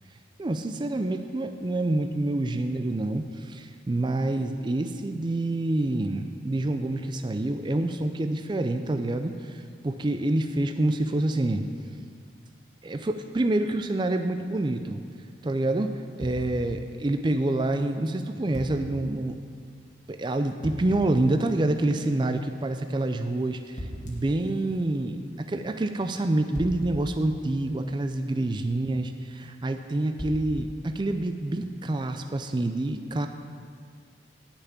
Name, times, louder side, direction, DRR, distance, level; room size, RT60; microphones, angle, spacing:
voice 1, 0.4-11.7 12.8-15.0 15.4-19.4 20.1-33.3, right 2 dB, 25° right, 7 dB, 0.4 m, -27 dB
sound 1, 16.2-17.0 18.5-19.1 20.6-21.2 23.8-24.4 26.5-27.9 30.2-31.0, equal, 45° left, 1.7 m, -39 dB
10.0 x 5.8 x 8.6 m, 2.1 s
head